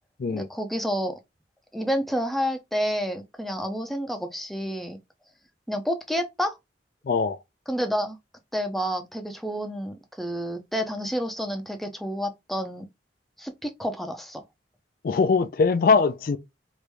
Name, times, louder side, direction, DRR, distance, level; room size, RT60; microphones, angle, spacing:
voice 1, 0.3-1.1 1.7-5.0 5.7-6.6 7.7-8.2 8.5-12.9 13.4-14.4, equal, ahead, 0.5 m, -29 dB
voice 2, 7.1-7.4 15.0-16.4, left 4 dB, 50° left, 0.4 m, -21 dB
3.1 x 2.6 x 3.3 m
head